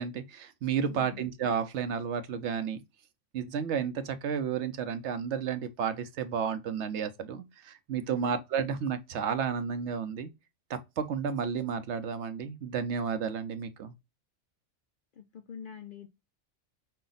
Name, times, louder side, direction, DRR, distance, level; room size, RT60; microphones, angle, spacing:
voice 1, 0.0-2.8 3.3-10.3 10.7-13.9, right 7 dB, 70° right, 0.9 m, -32 dB
voice 2, 0.8-1.3 8.1-8.3 15.1-16.1, left 7 dB, 60° left, 0.5 m, -44 dB
5.5 x 2.2 x 3.8 m
omnidirectional pair, 1.3 m